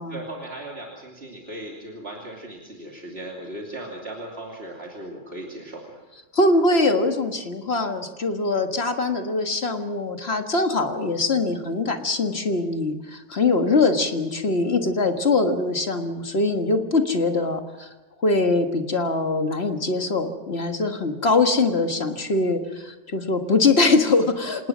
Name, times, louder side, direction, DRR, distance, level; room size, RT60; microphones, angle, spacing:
voice 1, 0.1-6.0, right 1 dB, 55° right, -2 dB, 3.1 m, -37 dB
voice 2, 6.3-17.9 18.2-24.7, left 3 dB, 55° left, 5 dB, 1.9 m, -22 dB
27.5 x 18.5 x 6.2 m, 1.2 s
omnidirectional pair, 1.3 m